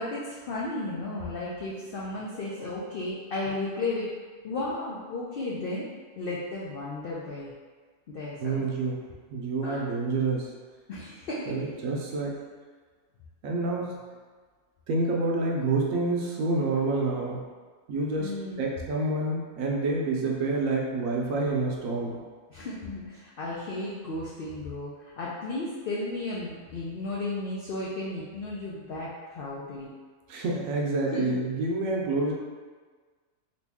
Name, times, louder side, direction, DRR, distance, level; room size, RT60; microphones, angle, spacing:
voice 1, 0.0-4.1 4.4-5.9 6.2-7.5 8.1-8.5 9.6-9.8 10.9-11.6 18.2-18.6 22.5-29.9 31.1-31.4, left 2 dB, 80° left, -5 dB, 0.5 m, -34 dB
voice 2, 8.4-10.5 11.5-12.4 13.4-14.0 14.9-17.5 17.9-18.3 18.6-22.2 30.3-32.3, right 3 dB, 70° right, -2 dB, 0.9 m, -28 dB
3.0 x 2.6 x 3.4 m, 1.5 s
omnidirectional pair, 1.6 m